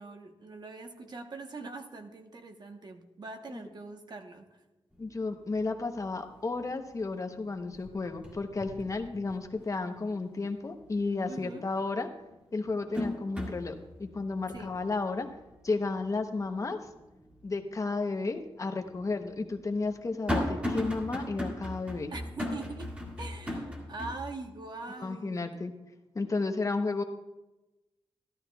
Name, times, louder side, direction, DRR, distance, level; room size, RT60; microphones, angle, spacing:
voice 1, 0.0-4.5 11.3-11.7 14.5-14.7 22.1-22.9 23.2-25.4, right 3 dB, 45° right, 5 dB, 1.0 m, -42 dB
voice 2, 5.0-12.1 12.5-15.3 15.6-16.8 17.4-22.1 25.0-25.7 26.1-27.0, left 3 dB, 35° left, 6 dB, 0.8 m, -33 dB
sound 1, 5.0-5.1 5.5-6.0 6.4-7.2 7.5-9.7 10.1-10.2 11.7-11.8 12.3-17.4 17.8-17.9 18.8-24.2, left 1 dB, 10° right, 1.9 m, -37 dB
14.0 x 13.0 x 2.3 m, 1.0 s
wide cardioid pair, 150°, 10 cm